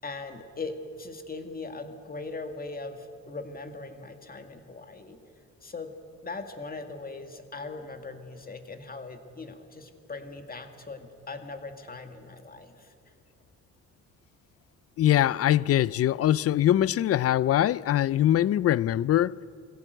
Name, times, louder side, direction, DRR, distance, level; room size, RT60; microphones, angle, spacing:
voice 1, 0.0-5.2 5.6-5.9 6.2-12.9, left 3 dB, 30° left, 2.1 m, -40 dB
voice 2, 15.0-19.4, left 12 dB, 50° left, 0.4 m, -23 dB
23.0 x 16.0 x 7.9 m
cardioid pair, 90°, 30 cm